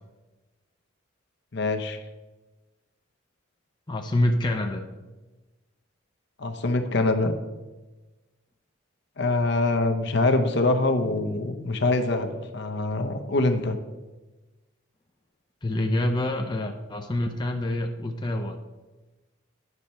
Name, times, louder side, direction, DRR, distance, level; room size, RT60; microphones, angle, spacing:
voice 1, 1.5-2.0 6.4-7.3 9.2-13.8, left 2 dB, 60° left, 7 dB, 0.8 m, -24 dB
voice 2, 3.9-4.8 15.6-18.6, left 1 dB, 20° left, 3 dB, 0.5 m, -26 dB
9.7 x 5.6 x 4.3 m, 1.2 s
head